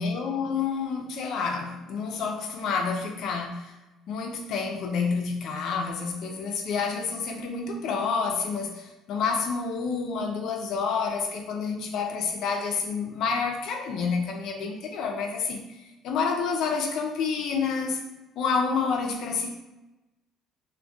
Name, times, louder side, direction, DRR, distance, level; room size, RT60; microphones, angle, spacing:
voice 1, 0.0-3.7 4.1-15.6 16.0-18.0 18.4-19.5, left 5 dB, 65° left, 3 dB, 0.4 m, -29 dB
2.2 x 2.1 x 2.6 m, 1.0 s
cardioid pair, 130°, 0 cm